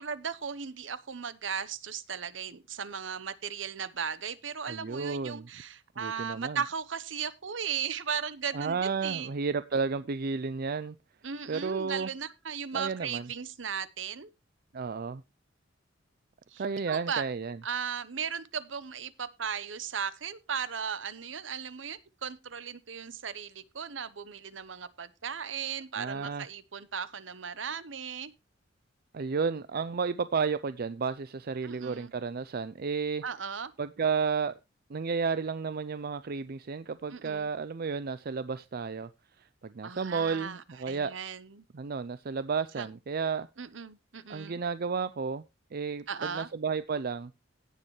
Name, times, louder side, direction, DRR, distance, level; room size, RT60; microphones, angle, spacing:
voice 1, 0.0-9.3 11.2-14.3 16.5-17.2 17.6-28.3 31.6-32.1 33.2-33.7 37.1-37.5 39.8-41.6 42.8-42.9 43.6-44.6 46.1-46.5, right 7 dB, 75° right, 1.0 m, -37 dB
voice 2, 4.7-5.5 6.0-6.6 8.5-11.0 11.5-12.1 12.7-13.3 14.7-15.2 16.6-17.6 26.0-26.4 29.1-33.2 33.8-34.5 34.9-39.1 39.4-41.1 41.7-43.5 44.3-45.4 45.7-47.3, right 5 dB, 50° right, 0.5 m, -32 dB
17.0 x 6.7 x 3.2 m
head